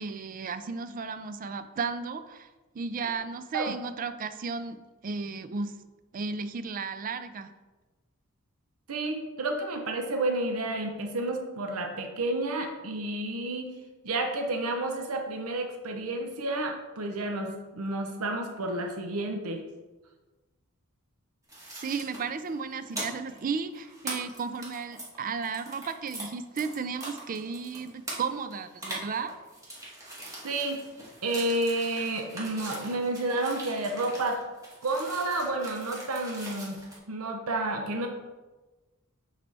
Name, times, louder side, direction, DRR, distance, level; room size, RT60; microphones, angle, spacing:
voice 1, 0.0-2.5 2.7-5.7 6.1-7.5 21.8-29.4, right 5 dB, 40° right, 11 dB, 0.4 m, -34 dB
voice 2, 8.9-13.7 14.0-19.6 30.4-30.8 31.2-34.4 34.8-36.8 37.1-38.1, right 2 dB, 80° right, 3 dB, 0.8 m, -30 dB
sound 1, 21.5-26.2 26.6-37.0, right 1 dB, 15° right, 1.7 m, -42 dB
8.1 x 4.0 x 3.4 m, 1.2 s
head